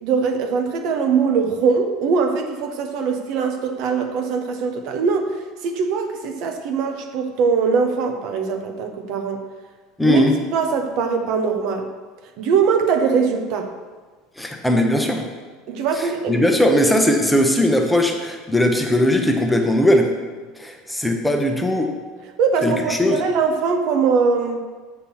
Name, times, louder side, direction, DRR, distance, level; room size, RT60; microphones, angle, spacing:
voice 1, 0.0-5.4 5.6-9.4 10.0-10.2 10.5-11.9 12.4-13.7 15.7-16.5 22.4-24.6, right 5 dB, 60° right, 5 dB, 1.0 m, -21 dB
voice 2, 10.0-10.3 14.4-15.3 16.3-20.1 20.6-21.9 22.6-23.2, left 1 dB, 5° left, 3 dB, 0.8 m, -18 dB
8.4 x 4.5 x 5.7 m, 1.4 s
supercardioid pair, 120°, 0 cm